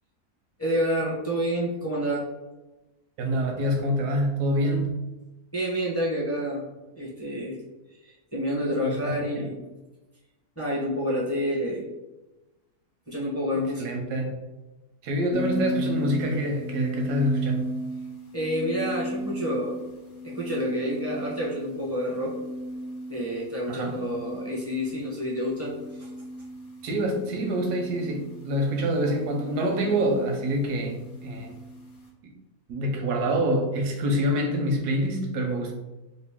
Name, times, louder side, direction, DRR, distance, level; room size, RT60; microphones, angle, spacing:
voice 1, 0.6-2.2 5.5-6.6 7.0-7.6 8.0-9.6 10.6-11.9 13.1-13.9 18.3-19.8 20.2-22.3 23.1-26.1, equal, 15° left, -6 dB, 0.6 m, -28 dB
voice 2, 3.2-5.0 8.8-9.4 13.8-14.3 15.0-17.7 23.7-24.0 26.8-31.6 32.2-32.3 32.7-35.7, equal, 85° right, 2 dB, 1.2 m, -26 dB
sound 1, 15.3-32.1, equal, 55° left, 1.0 m, -36 dB
3.1 x 2.6 x 3.5 m, 1.1 s
omnidirectional pair, 1.7 m